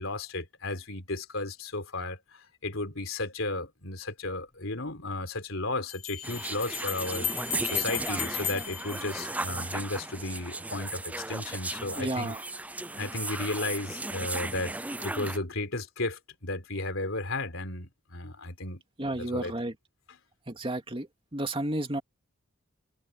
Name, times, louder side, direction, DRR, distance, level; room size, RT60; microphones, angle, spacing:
voice 1, 0.0-7.3 7.6-12.4 13.0-18.8 19.2-19.5, left 2 dB, 70° left, 4.2 m, -34 dB
Bell, 4.3-4.4 5.9-9.8, left 10 dB, 35° left, 1.0 m, -36 dB
sound 1, 6.2-15.4, right 2 dB, 5° right, 0.4 m, -36 dB
voice 2, 12.0-12.5 19.0-19.8 20.5-22.0, right 1 dB, 25° right, 2.5 m, -32 dB
head